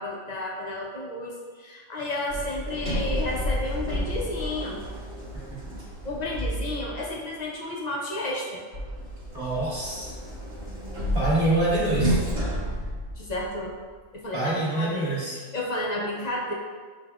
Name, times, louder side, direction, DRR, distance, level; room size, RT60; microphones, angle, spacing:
voice 1, 0.0-4.8 6.0-8.6 13.2-13.7 14.1-16.5, left 1 dB, 45° left, -3 dB, 0.5 m, -32 dB
Sliding door, 2.3-7.1 8.7-13.7, equal, 50° right, 1.5 m, -31 dB
voice 2, 9.3-10.1 11.1-12.2 14.3-15.3, right 2 dB, 30° right, -9 dB, 1.6 m, -25 dB
7.4 x 2.8 x 2.3 m, 1.5 s
omnidirectional pair, 1.4 m